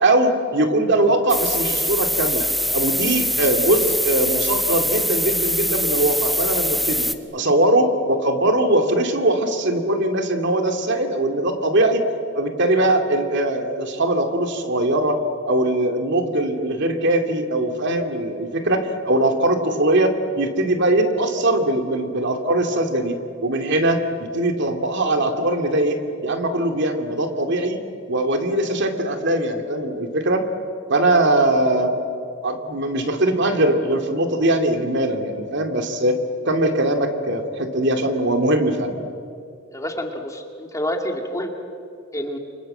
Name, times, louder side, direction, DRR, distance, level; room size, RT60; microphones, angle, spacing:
voice 1, 0.0-2.5 2.7-7.1 7.3-12.0 12.3-27.8 28.1-30.4 30.9-31.9 32.4-38.9, right 1 dB, 60° right, 6 dB, 2.6 m, -21 dB
sound 1, 1.3-7.1, equal, ahead, 1.1 m, -23 dB
voice 2, 39.7-41.5 42.1-42.4, equal, 15° left, 3 dB, 2.3 m, -28 dB
29.5 x 25.0 x 7.9 m, 2.4 s
head